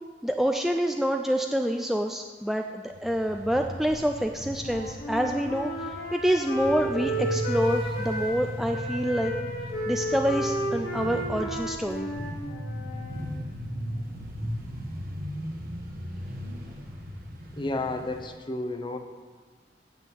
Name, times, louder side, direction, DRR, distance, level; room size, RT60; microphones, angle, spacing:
voice 1, 0.2-9.3 9.9-12.1, equal, ahead, 4 dB, 0.4 m, -27 dB
sound 1, 2.9-18.3, equal, 55° right, 1.7 m, -37 dB
Wind instrument woodwind instrument, 4.6-8.4 8.7-13.2, right 1 dB, 60° left, 1.8 m, -33 dB
voice 2, 17.5-19.0, left 2 dB, 25° left, 7 dB, 0.8 m, -31 dB
9.1 x 7.6 x 7.8 m, 1.5 s
head